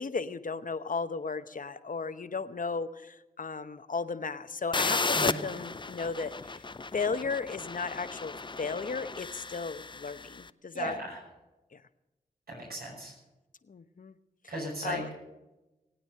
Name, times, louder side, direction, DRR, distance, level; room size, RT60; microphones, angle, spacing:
voice 1, 0.0-6.6 6.9-11.0 11.7-11.8 13.7-14.1 14.8-15.1, left 4 dB, 55° left, 11 dB, 0.9 m, -35 dB
sound 1, 4.7-10.4, left 3 dB, 30° left, 0.5 m, -34 dB
voice 2, 10.7-11.2 12.5-13.1 14.5-15.1, right 1 dB, 70° right, -1 dB, 5.9 m, -36 dB
19.0 x 9.0 x 6.6 m, 1.0 s
cardioid pair, 40°, 17 cm